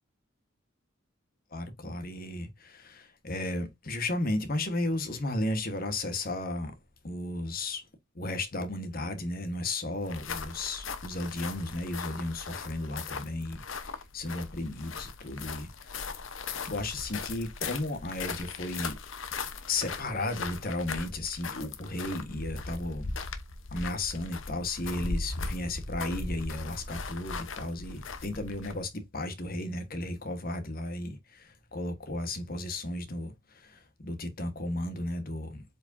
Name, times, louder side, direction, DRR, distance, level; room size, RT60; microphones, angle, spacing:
voice 1, 1.5-6.8 7.0-7.9 8.1-16.1 16.6-19.0 19.7-23.1 23.7-35.6, left 2 dB, 45° left, 1.4 m, -34 dB
sound 1, 10.0-28.9, left 4 dB, 65° left, 0.9 m, -38 dB
7.7 x 4.7 x 2.7 m
head